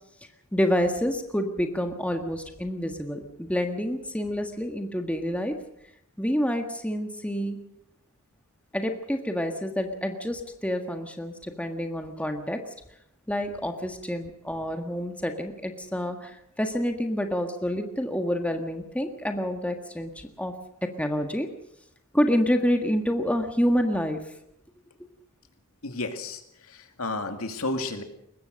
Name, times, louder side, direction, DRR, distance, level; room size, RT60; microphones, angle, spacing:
voice 1, 0.5-5.5 6.2-7.6 8.7-12.6 13.3-20.5 20.8-21.5 22.1-24.2, equal, 5° left, 5 dB, 1.6 m, -28 dB
voice 2, 25.8-28.0, left 2 dB, 70° left, 6 dB, 2.4 m, -32 dB
22.5 x 20.5 x 6.5 m, 0.75 s
head